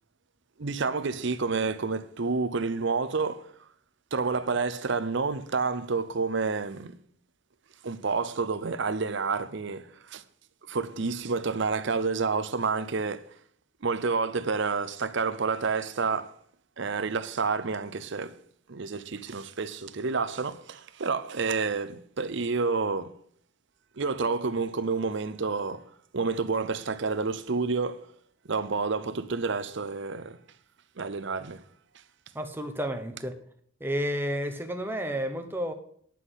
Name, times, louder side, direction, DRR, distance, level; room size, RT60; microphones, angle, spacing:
voice 1, 0.6-3.5 4.1-7.0 7.8-10.2 10.7-13.4 13.8-16.4 16.8-18.4 18.7-23.1 24.0-25.9 26.1-28.1 28.4-30.4 31.0-31.6, right 4 dB, 60° right, 0.7 m, -29 dB
voice 2, 32.3-33.3 33.8-35.7, equal, 10° right, 0.9 m, -31 dB
10.0 x 5.9 x 8.0 m
head